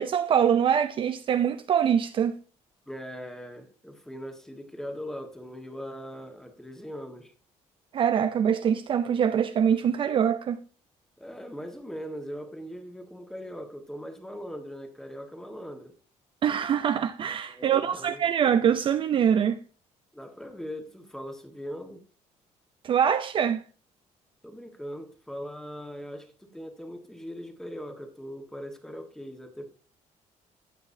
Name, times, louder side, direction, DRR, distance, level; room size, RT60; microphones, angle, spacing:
voice 1, 0.0-2.4 7.9-10.6 16.4-19.6 22.8-23.6, right 8 dB, 40° right, 0.5 m, -24 dB
voice 2, 2.9-7.3 11.2-15.9 17.5-18.2 20.1-22.0 24.4-29.7, equal, 5° left, 1.4 m, -40 dB
15.5 x 5.9 x 2.7 m
cardioid pair, 140°, 13 cm